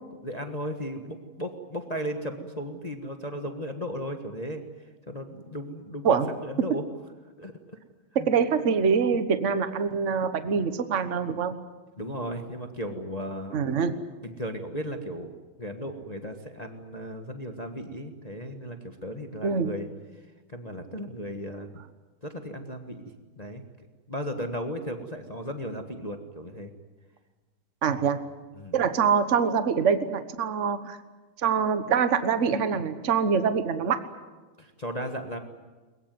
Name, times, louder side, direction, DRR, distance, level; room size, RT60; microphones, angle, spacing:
voice 1, 0.2-6.8 7.4-7.8 8.2-8.3 12.0-13.6 14.2-15.3 15.6-19.9 20.1-21.7 22.2-23.0 23.4-26.7 27.9-28.1 28.5-28.7 34.6-35.4, equal, 20° left, 5 dB, 1.4 m, -36 dB
voice 2, 8.3-11.5 13.5-13.9 19.4-19.7 27.8-28.2 28.7-31.0 31.4-34.0, right 6 dB, 40° right, 10 dB, 1.5 m, -24 dB
22.0 x 21.5 x 9.4 m, 1.3 s
omnidirectional pair, 2.2 m